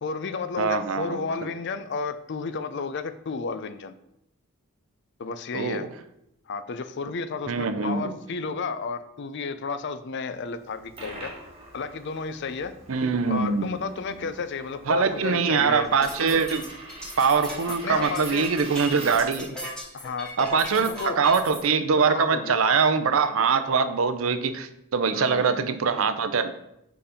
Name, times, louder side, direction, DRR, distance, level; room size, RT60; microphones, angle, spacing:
voice 1, 0.0-3.9 5.2-5.9 6.5-11.3 11.7-12.7 13.3-15.9 17.8-18.5 19.9-21.2 22.1-22.8 25.1-25.5, left 4 dB, 55° left, 12 dB, 0.4 m, -32 dB
voice 2, 0.6-1.3 5.5-5.9 7.5-8.2 12.9-13.7 14.9-16.7 17.2-19.5 20.4-26.5, right 5 dB, 70° right, 10 dB, 0.5 m, -23 dB
Coin (dropping), 10.6-19.5, right 2 dB, 25° right, 1.2 m, -44 dB
sound 1, 15.8-21.6, equal, 5° left, 1.6 m, -37 dB
5.1 x 4.8 x 5.0 m, 0.81 s
head